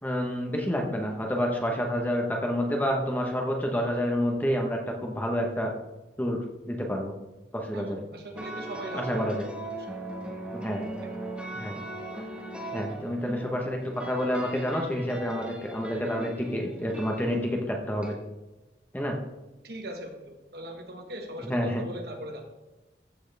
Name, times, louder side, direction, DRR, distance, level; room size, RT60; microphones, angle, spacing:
voice 1, 0.0-5.7 6.2-6.4 6.6-7.1 7.5-8.0 8.9-9.5 10.5-10.9 11.5-11.8 12.7-18.1 18.9-19.2 21.4-21.8, equal, 10° left, 1 dB, 1.1 m, -29 dB
voice 2, 7.7-9.3 19.6-22.4, right 1 dB, 60° right, 3 dB, 1.4 m, -40 dB
sound 1, 8.3-18.1, right 2 dB, 5° right, 1.4 m, -39 dB
14.5 x 6.3 x 3.5 m, 1.1 s
head